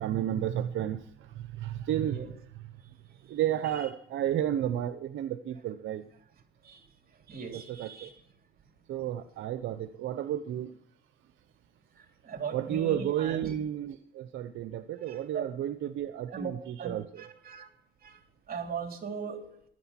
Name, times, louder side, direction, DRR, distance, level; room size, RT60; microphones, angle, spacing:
voice 1, 0.0-2.7 3.3-6.1 7.5-8.1 8.9-10.8 12.5-17.2, right 11 dB, 80° right, 11 dB, 0.8 m, -32 dB
voice 2, 7.3-8.2 12.2-13.5 15.0-15.4 16.3-16.5 16.8-17.7 18.0-18.2 18.5-19.4, right 6 dB, 50° right, 4 dB, 3.2 m, -39 dB
15.5 x 11.5 x 5.8 m, 0.70 s
cardioid pair, 90°, 20 cm